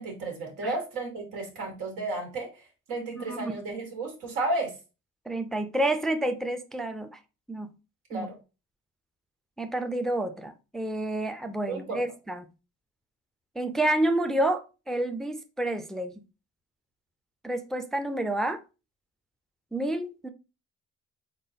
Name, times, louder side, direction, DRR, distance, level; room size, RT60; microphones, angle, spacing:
voice 1, 0.0-2.5 2.9-4.7 8.1-8.4 11.7-12.0, right 2 dB, 90° right, 1.7 m, -32 dB
voice 2, 3.1-3.5 5.3-7.2 7.5-7.7 8.1-8.3 9.6-12.5 13.6-16.2 17.4-18.6 19.7-20.3, right 1 dB, ahead, 0.4 m, -29 dB
3.8 x 3.7 x 2.7 m
cardioid pair, 90°, 30 cm